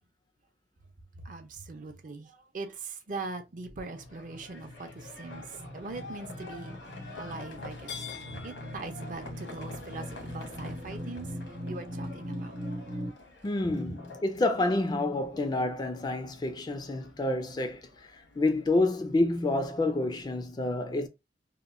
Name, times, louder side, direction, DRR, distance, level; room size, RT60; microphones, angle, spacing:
voice 1, 1.1-8.0 8.3-12.7, right 3 dB, 45° right, 0.5 m, -41 dB
sound 1, 3.3-13.1, equal, 70° right, 0.8 m, -41 dB
Livestock farm animals working animals, 3.8-20.3, left 3 dB, 85° left, 0.9 m, -48 dB
voice 2, 13.4-21.1, left 2 dB, 25° left, 0.3 m, -28 dB
2.9 x 2.1 x 2.4 m
head